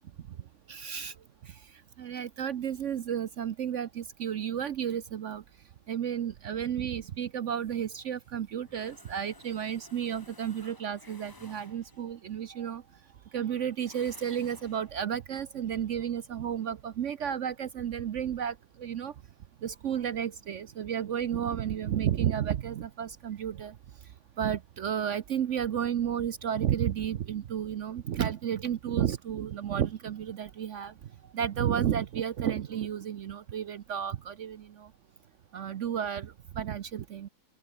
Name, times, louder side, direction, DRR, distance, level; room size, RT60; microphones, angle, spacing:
voice 1, 0.3-1.2 1.4-5.4 5.9-12.8 13.3-19.2 19.6-34.9 35.5-37.3, right 9 dB, 65° right, 0.7 m, -32 dB
sound 1, 7.4-12.2 13.7-14.9, left 2 dB, 15° left, 1.0 m, -55 dB
omnidirectional pair, 2.1 m